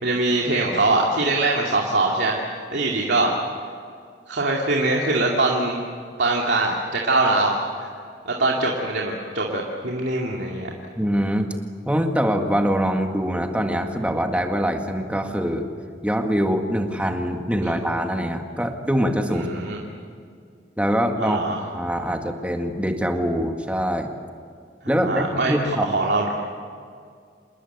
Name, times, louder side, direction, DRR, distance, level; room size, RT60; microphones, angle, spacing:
voice 1, 0.0-2.4 2.7-3.4 4.3-5.8 6.2-7.9 8.2-10.7 19.3-19.8 21.2-21.6 24.8-26.3, right 2 dB, 75° right, -2 dB, 2.6 m, -22 dB
voice 2, 11.0-11.5 11.8-15.7 16.0-19.6 20.8-21.4 21.7-24.1 24.9-25.9, equal, 5° right, 4 dB, 1.9 m, -23 dB
27.5 x 20.0 x 8.2 m, 2.2 s
head